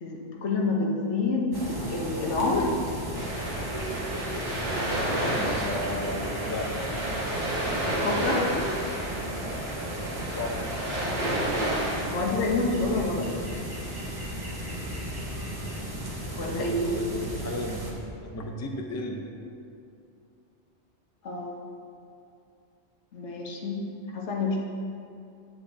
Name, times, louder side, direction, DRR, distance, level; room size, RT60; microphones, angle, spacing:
voice 1, 0.0-2.7 7.9-8.5 12.1-13.3 16.3-17.2 21.2-21.6 23.1-24.6, left 3 dB, 75° left, -1 dB, 1.2 m, -28 dB
sound 1, 1.5-17.9, right 1 dB, 20° right, 0.9 m, -35 dB
sound 2, 3.1-12.0, right 1 dB, 60° right, 2.2 m, -31 dB
voice 2, 5.3-6.7 10.3-10.6 16.4-17.8 18.2-19.2, left 1 dB, 20° left, 1 dB, 0.4 m, -35 dB
8.6 x 7.6 x 2.7 m, 2.5 s
omnidirectional pair, 1.2 m